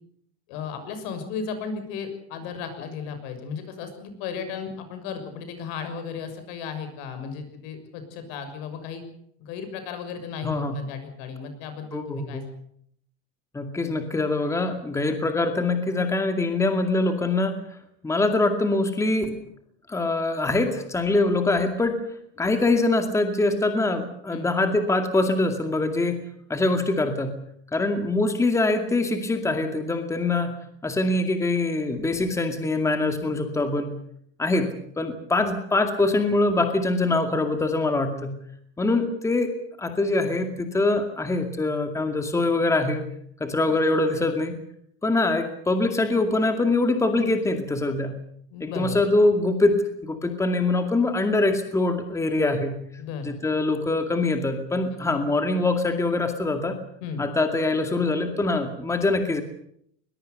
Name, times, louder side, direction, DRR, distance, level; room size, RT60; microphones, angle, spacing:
voice 1, 0.5-9.0 9.4-12.4 24.3-24.5 43.6-43.8 48.5-49.0 53.0-53.4 57.0-57.2, left 6 dB, 70° left, 8 dB, 6.5 m, -35 dB
voice 2, 10.4-10.8 11.9-12.5 13.5-17.6 18.0-19.4 19.9-22.0 22.4-26.2 26.5-27.4 27.7-30.5 30.8-34.0 34.4-38.4 38.8-43.1 43.4-44.6 45.0-48.2 48.6-49.8 50.0-52.8 53.2-56.8 57.2-59.4, left 2 dB, 10° left, 6 dB, 2.3 m, -24 dB
22.0 x 21.5 x 6.8 m, 0.67 s
cardioid pair, 150°, 32 cm